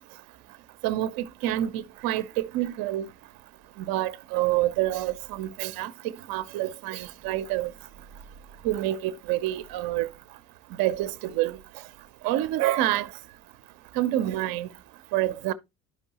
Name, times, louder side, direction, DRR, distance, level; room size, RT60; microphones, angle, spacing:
voice 1, 0.8-3.1 3.8-5.9 6.3-7.7 8.6-10.1 10.8-11.6 12.2-13.1 14.0-14.7 15.1-15.5, right 14 dB, 60° right, 0.8 m, -27 dB
11.5 x 5.3 x 2.9 m
hypercardioid pair, 65°, 40 cm